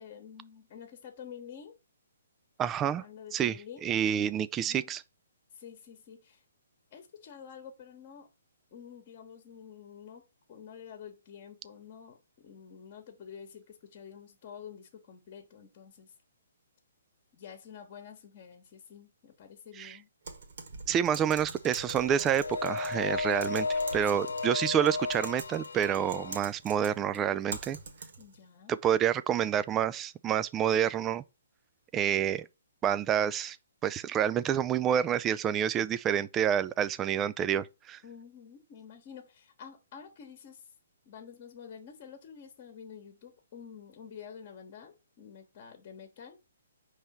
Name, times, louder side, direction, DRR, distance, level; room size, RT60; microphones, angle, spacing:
voice 1, 0.0-1.7 2.8-3.8 4.6-4.9 5.5-6.4 6.9-8.3 8.7-10.2 10.5-16.1 17.3-20.1 24.2-24.3 28.2-28.8 38.0-40.7 41.0-46.4, left 7 dB, 35° left, 1.1 m, -49 dB
voice 2, 2.6-3.0 3.3-5.0 19.8-20.0 20.9-27.8 28.7-31.2 31.9-32.5 32.8-33.6 33.8-38.0, right 9 dB, 15° right, 0.3 m, -28 dB
Typing, 20.3-28.4, right 4 dB, 55° right, 1.3 m, -45 dB
sound 1, 21.7-26.4, left 4 dB, 70° left, 0.3 m, -34 dB
5.4 x 3.3 x 5.7 m
figure-of-eight pair, 130°, 0 cm